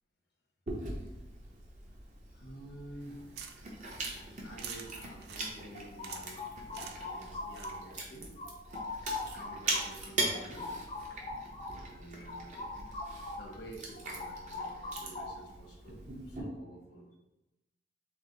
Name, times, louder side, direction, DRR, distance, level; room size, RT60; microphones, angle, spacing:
Chewing mastication, 0.7-16.4, right 2 dB, 40° right, 0.8 m, -41 dB
voice 1, 2.3-3.2 4.4-8.3 9.0-10.9 11.3-12.5 13.3-16.0 16.2-17.1, right 1 dB, 75° left, -1 dB, 1.1 m, -50 dB
sound 1, 3.0-8.1, right 7 dB, 60° right, 0.4 m, -50 dB
sound 2, 5.7-8.0 8.4-13.6 13.9-15.6, left 3 dB, 30° left, 0.4 m, -42 dB
6.0 x 2.1 x 3.9 m, 0.97 s
head